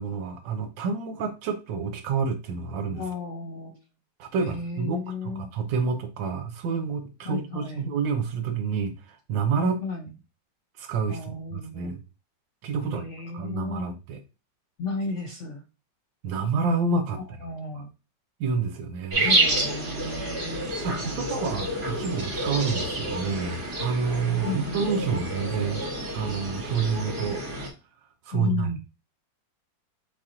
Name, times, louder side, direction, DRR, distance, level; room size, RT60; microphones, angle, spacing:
voice 1, 0.0-3.0 4.2-9.8 10.8-12.0 12.6-13.0 13.3-14.2 16.2-17.2 17.7-17.8 18.4-19.3 20.8-25.9 26.1-27.4 28.3-28.7, right 5 dB, 85° right, 1.4 m, -28 dB
voice 2, 2.9-3.8 4.4-5.5 7.2-7.9 9.8-10.1 11.1-11.9 12.8-13.8 14.8-15.6 17.1-17.9 19.2-21.4 24.4-25.3 28.3-28.8, left 4 dB, 80° left, 0.6 m, -34 dB
sound 1, 19.1-27.7, right 2 dB, 35° right, 1.1 m, -29 dB
6.7 x 2.9 x 2.4 m
omnidirectional pair, 2.0 m